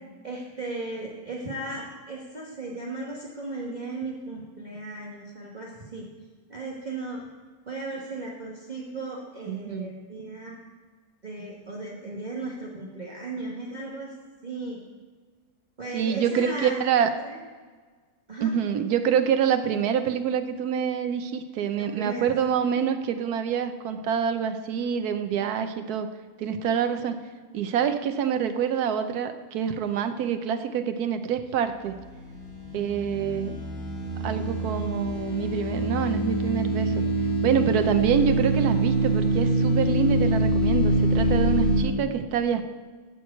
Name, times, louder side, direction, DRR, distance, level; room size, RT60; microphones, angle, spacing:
voice 1, 0.2-6.1 6.5-7.2 7.7-10.6 11.2-14.1 14.4-14.8 15.8-17.4 18.3-18.5 21.8-22.3, right 2 dB, 30° right, -4 dB, 1.4 m, -36 dB
voice 2, 9.5-9.9 15.9-17.1 18.4-26.1 26.4-27.2 27.5-31.9 32.7-33.6 34.2-36.9 37.4-42.6, right 8 dB, 90° right, 8 dB, 1.3 m, -26 dB
sound 1, 32.0-41.8, right 1 dB, 85° left, 3.0 m, -25 dB
13.0 x 4.7 x 8.1 m, 1.5 s
omnidirectional pair, 1.6 m